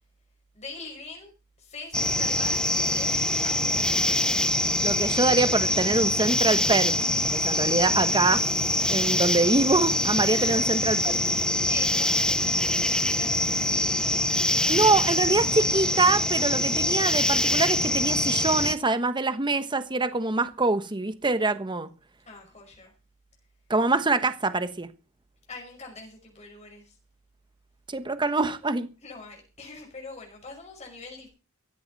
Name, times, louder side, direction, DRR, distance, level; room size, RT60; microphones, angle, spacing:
voice 1, 0.5-1.3 1.6-3.5 10.2-10.8 11.1-13.7 22.3-22.9 25.5-26.9 29.0-31.3, left 3 dB, 35° left, 5.4 m, -43 dB
sound 1, 1.9-18.8, left 1 dB, 5° left, 0.9 m, -24 dB
voice 2, 4.8-6.9 7.3-8.4 8.9-11.2 14.7-21.9 23.7-24.9 27.9-28.9, right 3 dB, 25° right, 1.2 m, -24 dB
16.5 x 15.0 x 4.1 m
head